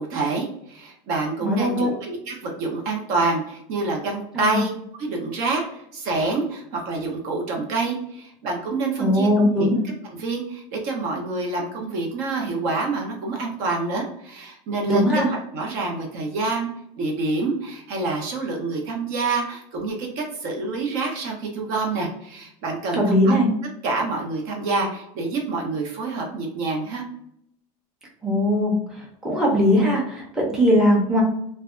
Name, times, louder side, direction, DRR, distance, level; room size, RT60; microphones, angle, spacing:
voice 1, 0.0-4.7 5.0-9.7 10.1-16.7 17.0-23.3 23.8-27.0, right 3 dB, 55° right, 1 dB, 0.8 m, -27 dB
voice 2, 1.4-1.9 4.3-4.6 9.0-9.8 14.9-15.3 22.9-23.5 28.2-31.2, equal, 5° right, -4 dB, 0.7 m, -20 dB
2.6 x 2.2 x 2.4 m, 0.74 s
supercardioid pair, 140°, 18 cm